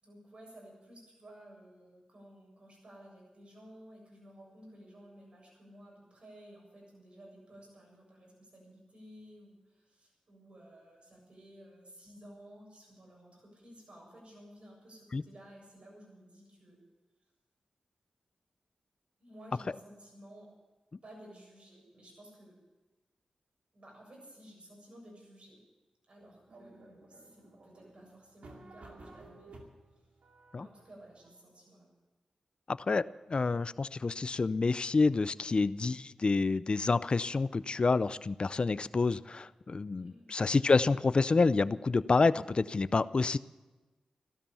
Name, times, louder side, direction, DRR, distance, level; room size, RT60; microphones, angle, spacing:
voice 1, 0.0-16.8 19.2-20.5 21.0-22.5 23.7-25.6 26.1-29.5 30.5-31.9 40.0-40.3, equal, 60° right, -1 dB, 7.5 m, -54 dB
sound 1, 26.5-31.3, right 2 dB, 85° right, 2.3 m, -54 dB
voice 2, 32.7-43.4, left 3 dB, 50° left, 16 dB, 0.5 m, -28 dB
15.0 x 12.5 x 7.0 m, 1.2 s
cardioid pair, 55°, 2 cm